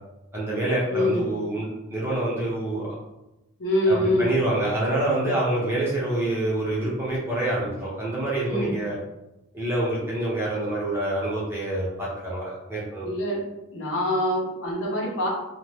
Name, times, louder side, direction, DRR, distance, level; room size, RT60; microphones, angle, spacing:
voice 1, 0.3-2.9 3.9-9.0 9.5-13.1, right 1 dB, 10° right, -6 dB, 0.7 m, -26 dB
voice 2, 0.9-1.2 3.6-4.3 5.2-5.3 8.4-8.7 13.0-13.4 13.7-15.3, left 1 dB, 65° left, -3 dB, 0.8 m, -24 dB
2.6 x 2.1 x 3.1 m, 0.93 s
head